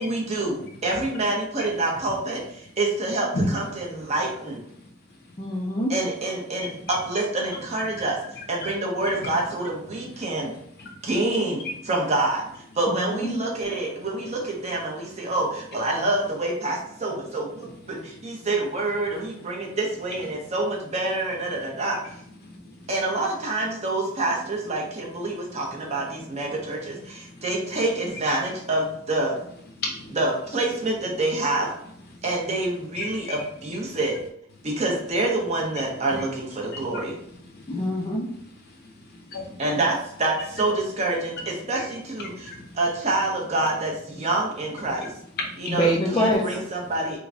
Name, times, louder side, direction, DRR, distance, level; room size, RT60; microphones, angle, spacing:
voice 1, 0.0-4.6 5.9-8.2 8.5-10.5 11.0-22.0 22.9-29.4 30.1-31.7 32.2-34.2 34.6-37.2 39.6-42.5 42.7-45.1 45.6-47.2, right 2 dB, 35° right, -1 dB, 0.8 m, -27 dB
voice 2, 5.4-5.9 12.9-13.4 37.7-38.3 45.7-46.6, equal, 25° left, -3 dB, 0.4 m, -24 dB
voice 3, 6.6-7.0 7.9-8.0 8.4-8.7 9.0-9.1 10.1-10.3 10.8-10.9 17.6-18.3 22.4-22.9 25.3-25.6 26.2-26.3 27.1-27.4 29.8-30.2 33.0-33.3 36.1-36.2 36.7-37.0 37.5-37.7 39.3-39.8 41.8-41.9 42.2-42.7 44.8-45.1 45.4-45.8, left 2 dB, 50° left, 1 dB, 0.8 m, -35 dB
4.7 x 2.2 x 2.7 m, 0.69 s
head